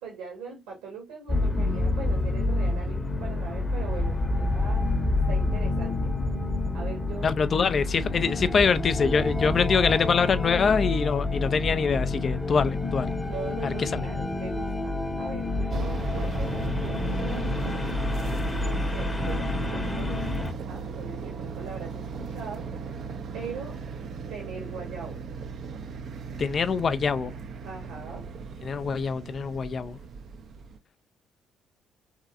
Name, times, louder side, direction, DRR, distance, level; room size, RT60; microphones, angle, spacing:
voice 1, 0.0-4.9 5.3-6.1 6.7-7.3 13.2-17.6 18.5-22.7 23.3-23.8 24.3-25.2 27.6-28.3, right 5 dB, 75° right, 1.3 m, -41 dB
sound 1, 1.3-20.5, left 2 dB, 20° left, 1.0 m, -28 dB
voice 2, 7.2-13.1 13.6-14.0 26.4-27.3 28.6-30.0, left 5 dB, 45° left, 0.5 m, -24 dB
sound 2, 15.7-30.8, right 5 dB, 55° right, 0.5 m, -37 dB
3.7 x 3.1 x 2.3 m
figure-of-eight pair, 45°, 0 cm